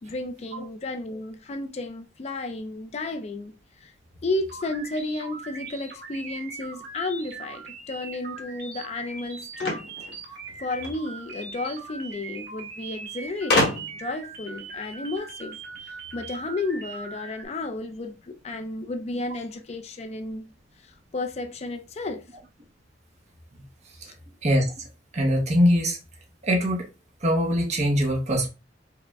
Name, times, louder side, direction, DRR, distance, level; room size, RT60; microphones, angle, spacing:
voice 1, 0.0-3.5 3.8-3.9 4.2-9.9 10.6-15.6 15.8-20.5 20.8-22.2 24.0-24.1, left 2 dB, 35° left, 0.4 m, -32 dB
sound 1, 4.5-17.4, right 4 dB, 60° right, 1.7 m, -40 dB
sound 2, 9.6-11.0 12.1-12.2 12.4-12.5 13.5-14.1, left 2 dB, 60° left, 1.3 m, -26 dB
voice 2, 24.4-24.8 25.1-26.0 26.4-26.9 27.2-28.5, equal, 40° right, 0.8 m, -22 dB
4.7 x 2.1 x 3.4 m
head